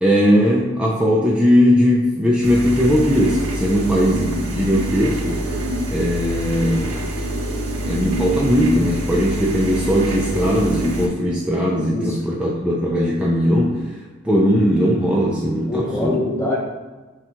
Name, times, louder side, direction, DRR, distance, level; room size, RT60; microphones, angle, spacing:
voice 1, 0.0-5.4 5.9-7.0 7.9-13.9 14.2-16.2, equal, 5° right, -5 dB, 0.4 m, -18 dB
sound 1, 2.4-11.1, right 1 dB, 85° right, 0.6 m, -26 dB
voice 2, 11.7-12.2 15.7-16.6, left 2 dB, 15° left, -3 dB, 0.7 m, -24 dB
5.8 x 2.3 x 2.9 m, 1.2 s
head